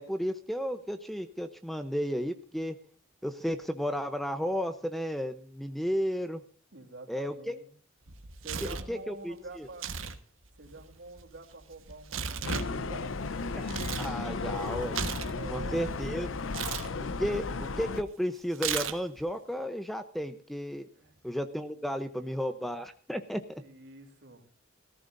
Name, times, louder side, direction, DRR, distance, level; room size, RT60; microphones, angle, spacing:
voice 1, 0.0-2.8 3.2-6.4 7.1-7.5 8.6-9.7 13.5-13.7 14.0-15.0 15.5-16.3 17.2-17.4 17.8-20.9 21.2-23.6, equal, ahead, 10 dB, 0.7 m, -33 dB
voice 2, 6.7-7.7 8.4-9.9 10.5-13.2 15.3-15.9 20.9-21.2 22.1-22.4 23.6-24.4, right 2 dB, 60° right, 3 dB, 3.2 m, -47 dB
Tearing, 8.1-8.9 9.7-10.2 10.4-14.1 14.5-16.0 16.5-16.9 18.5-19.2, right 6 dB, 90° right, 1.4 m, -36 dB
sound 1, 12.4-18.0, left 3 dB, 75° left, 0.7 m, -34 dB
17.5 x 14.0 x 2.6 m, 0.42 s
head